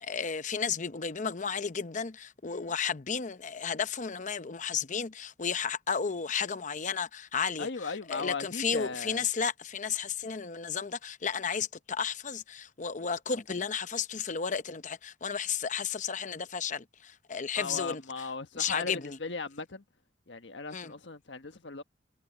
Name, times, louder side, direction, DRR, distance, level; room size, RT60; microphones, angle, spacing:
voice 1, 0.0-7.7 8.1-18.0 18.5-19.2 20.7-20.9, left 6 dB, 45° left, 0.8 m, -33 dB
voice 2, 7.6-9.3 17.5-19.8 20.3-21.8, left 4 dB, 85° left, 1.4 m, -37 dB
head